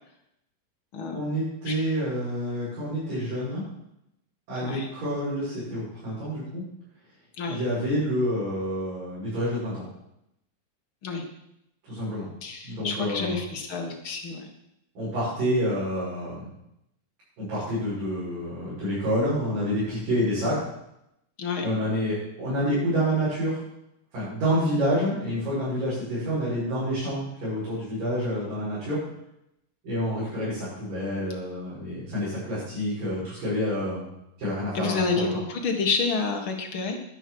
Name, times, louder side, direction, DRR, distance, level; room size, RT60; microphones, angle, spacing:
voice 1, 1.1-3.6 4.5-6.6 7.4-9.8 11.8-12.3 12.6-13.4 15.0-16.5 17.4-20.6 21.6-23.6 24.1-29.0 29.8-34.1 34.4-35.3, equal, 85° right, -11 dB, 7.6 m, -28 dB
voice 2, 12.4-14.5 21.4-21.7 34.7-37.0, left 4 dB, 45° left, 2 dB, 2.0 m, -29 dB
11.0 x 10.0 x 6.3 m, 0.82 s
omnidirectional pair, 3.8 m